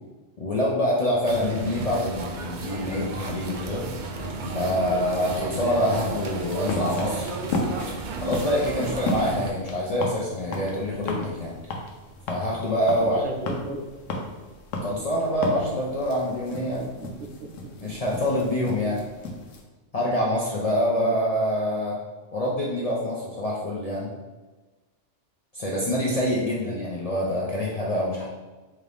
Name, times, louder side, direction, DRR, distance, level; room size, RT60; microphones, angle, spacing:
voice 1, 0.4-3.9 4.5-7.4 8.2-11.5 12.3-13.2 14.8-16.8 17.8-19.0 19.9-22.0 22.3-24.1 25.5-28.3, left 1 dB, 50° left, -5 dB, 0.4 m, -26 dB
sound 1, 1.2-9.5, right 3 dB, 60° right, 0.5 m, -33 dB
sound 2, 6.0-19.6, left 2 dB, 85° left, 1.0 m, -35 dB
voice 2, 13.0-13.9 16.7-17.9 20.0-20.1 20.9-21.1, right 2 dB, 90° right, 2 dB, 1.0 m, -37 dB
4.3 x 2.5 x 3.3 m, 1.2 s
omnidirectional pair, 1.3 m